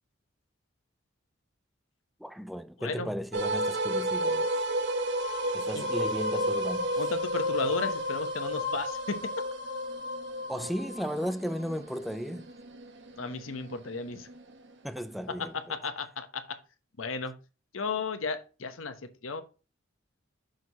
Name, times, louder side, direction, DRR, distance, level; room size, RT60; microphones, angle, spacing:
voice 1, 2.2-4.6 5.5-7.1 10.5-12.5 14.8-15.8, equal, ahead, 0.4 m, -35 dB
sound 1, 3.3-14.5, equal, 65° right, 1.1 m, -32 dB
voice 2, 7.0-9.3 13.2-14.3 15.7-16.6 17.0-17.3 17.7-18.9 19.2-19.4, left 4 dB, 85° left, 1.0 m, -34 dB
6.3 x 4.7 x 4.1 m
head